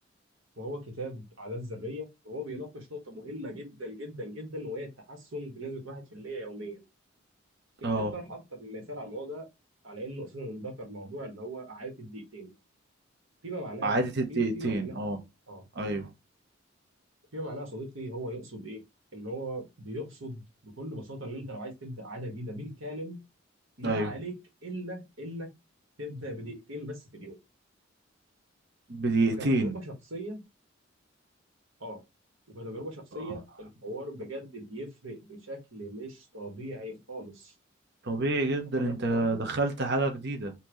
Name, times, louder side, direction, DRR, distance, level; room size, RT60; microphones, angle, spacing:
voice 1, 0.6-6.9 7.8-9.5 9.8-12.5 13.4-14.0 14.3-14.9 15.5-15.6 17.3-18.8 19.1-23.2 23.8-24.3 24.6-25.5 26.0-27.4 29.2-30.4 31.8-32.0 32.5-37.5 38.7-39.4, equal, 80° right, 1.9 m, -39 dB
voice 2, 13.8-15.2 15.7-16.1 23.8-24.1 28.9-29.8 33.1-33.2 38.0-40.5, right 2 dB, 60° right, 1.0 m, -28 dB
5.8 x 2.9 x 3.1 m
head